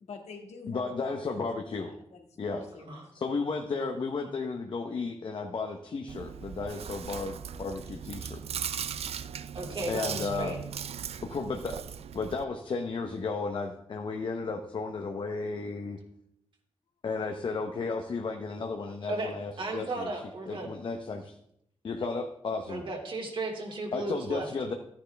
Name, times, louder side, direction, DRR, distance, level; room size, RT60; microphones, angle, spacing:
voice 1, 0.0-1.5 1.8-3.0, left 4 dB, 85° left, 2 dB, 2.1 m, -46 dB
voice 2, 0.7-1.9 2.4-2.6 3.1-8.4 9.9-10.6 11.3-11.8 12.1-16.0 17.0-20.1 20.4-21.3 21.8-22.8 23.9-24.7, left 4 dB, 50° left, 4 dB, 0.9 m, -33 dB
Chewing mastication, 6.1-12.4, right 8 dB, 70° right, 0.4 m, -38 dB
voice 3, 9.5-10.6 19.1-20.7 22.7-24.5, right 2 dB, 50° right, 1 dB, 2.6 m, -35 dB
14.0 x 10.0 x 3.4 m, 0.74 s
wide cardioid pair, 155°, 11 cm